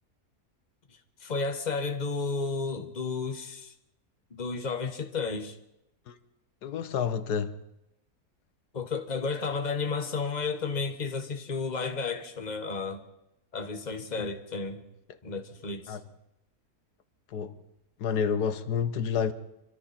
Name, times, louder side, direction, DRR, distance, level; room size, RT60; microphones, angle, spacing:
voice 1, 1.2-3.7 4.3-5.6 8.7-13.0 13.5-14.8 15.2-16.0, left 4 dB, 30° left, 1.4 m, -32 dB
voice 2, 6.6-7.6 14.2-14.3 15.9-16.0 17.3-17.6 18.0-19.3, left 7 dB, 90° left, 1.5 m, -29 dB
26.5 x 24.5 x 4.3 m
omnidirectional pair, 1.7 m